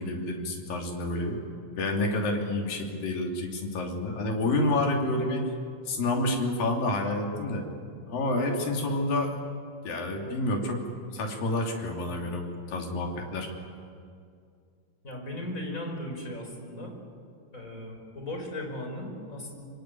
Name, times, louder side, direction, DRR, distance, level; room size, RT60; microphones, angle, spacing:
voice 1, 0.0-1.4 1.8-5.4 5.9-7.6 8.1-9.4 9.8-10.8 11.1-13.5, left 2 dB, 80° left, 1 dB, 4.8 m, -29 dB
voice 2, 15.0-16.9 17.5-19.6, left 1 dB, 20° left, 2 dB, 5.4 m, -37 dB
26.0 x 24.5 x 9.3 m, 2.3 s
omnidirectional pair, 3.9 m